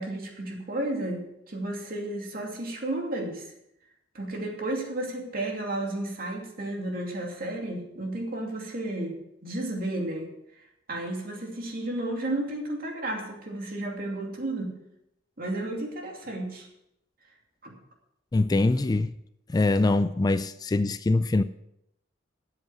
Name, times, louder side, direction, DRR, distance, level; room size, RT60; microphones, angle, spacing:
voice 1, 0.0-3.5 4.1-10.6 10.9-14.8 15.4-16.7 17.6-17.8, right 1 dB, 50° right, 2.7 m, -33 dB
voice 2, 18.3-19.2 19.5-21.4, left 2 dB, 20° left, 0.3 m, -23 dB
12.5 x 7.9 x 6.1 m
head